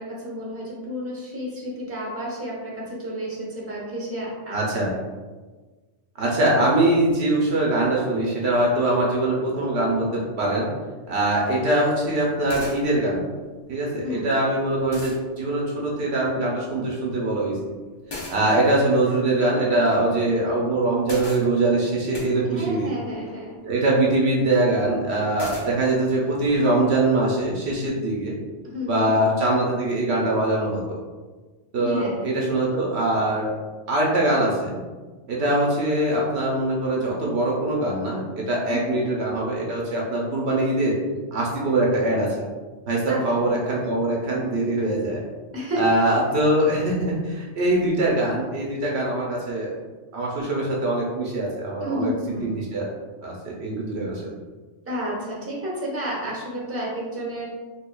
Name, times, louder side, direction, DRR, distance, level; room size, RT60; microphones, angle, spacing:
voice 1, 0.0-4.6 14.0-14.3 22.5-23.6 28.6-29.1 31.8-32.3 38.7-39.0 43.1-43.2 45.5-45.8 51.8-52.6 54.9-57.4, equal, 15° right, -5 dB, 0.9 m, -31 dB
voice 2, 4.5-4.9 6.2-10.7 11.1-13.2 13.7-17.6 18.3-22.9 23.6-28.3 28.9-31.0 31.7-33.5 33.9-34.8 35.3-40.9 41.3-42.3 42.9-45.2 45.7-49.7 50.1-52.1 52.4-52.9 53.2-54.2, right 1 dB, 65° right, -3 dB, 0.9 m, -22 dB
sound 1, 11.1-11.2 12.2-12.3 12.5-12.8 14.3-14.4 14.9-15.2 18.1-18.4 21.0-21.4 22.1-22.3 25.4-25.7, left 2 dB, 30° left, 0.5 m, -35 dB
4.4 x 2.8 x 2.3 m, 1.3 s
omnidirectional pair, 1.2 m